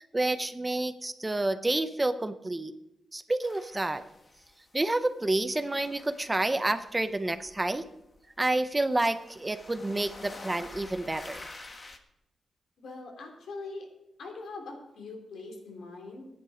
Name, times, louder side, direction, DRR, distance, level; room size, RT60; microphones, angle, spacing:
voice 1, 0.0-2.7 3.1-4.0 4.7-7.8 8.4-11.4, right 2 dB, 15° right, 11 dB, 0.6 m, -29 dB
sound 1, 3.4-5.0 5.3-12.0, left 2 dB, 30° left, 1.3 m, -49 dB
voice 2, 12.8-13.9 14.2-16.3, left 3 dB, 90° left, 1 dB, 3.3 m, -42 dB
13.5 x 10.5 x 5.0 m, 0.84 s
wide cardioid pair, 145°, 0 cm